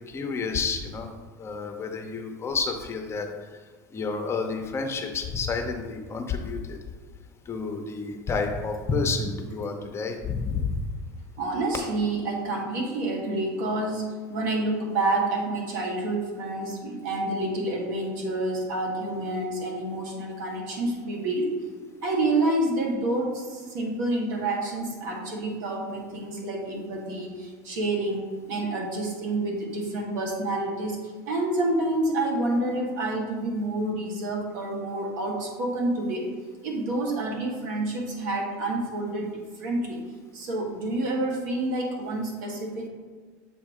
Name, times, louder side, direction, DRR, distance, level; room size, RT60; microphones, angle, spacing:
voice 1, 0.1-1.1 1.4-3.3 3.9-6.8 7.5-10.7, left 4 dB, 25° left, 4 dB, 0.8 m, -30 dB
voice 2, 11.4-21.7 22.0-31.0 31.3-36.3 36.6-39.3 39.6-40.0 40.3-42.9, right 2 dB, 80° right, 0 dB, 1.4 m, -28 dB
7.2 x 2.7 x 4.9 m, 1.5 s
supercardioid pair, 115°, 10 cm